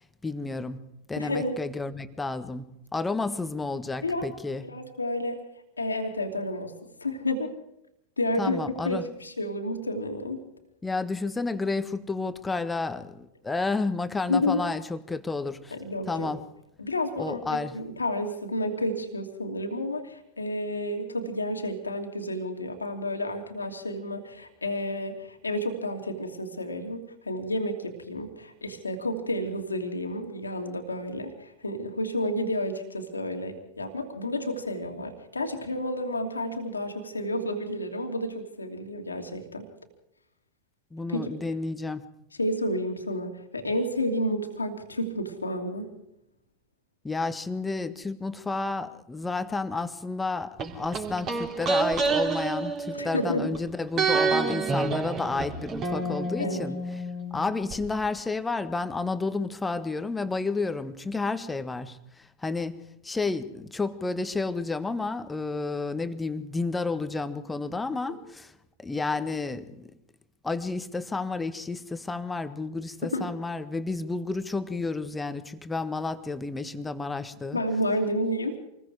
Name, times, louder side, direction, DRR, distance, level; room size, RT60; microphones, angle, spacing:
voice 1, 0.2-4.6 8.4-9.0 10.8-15.7 16.1-16.4 17.2-17.7 40.9-42.0 47.0-56.8 57.3-68.5 68.8-69.9 70.4-77.6, left 3 dB, 10° left, 10 dB, 1.6 m, -31 dB
voice 2, 1.2-1.6 4.0-4.3 4.6-5.4 5.8-6.7 7.0-7.5 8.2-8.6 8.8-10.4 14.3-14.6 15.7-16.3 16.8-39.7 41.1-41.3 42.4-45.9 52.9-53.5 56.4-56.7 73.1-73.3 77.5-78.6, left 1 dB, 80° left, 4 dB, 2.8 m, -30 dB
sound 1, 50.6-53.6 54.0-57.8 58.0-58.1, right 4 dB, 30° right, 4.2 m, -28 dB
27.5 x 21.0 x 4.9 m, 0.83 s
figure-of-eight pair, 90°, 0 cm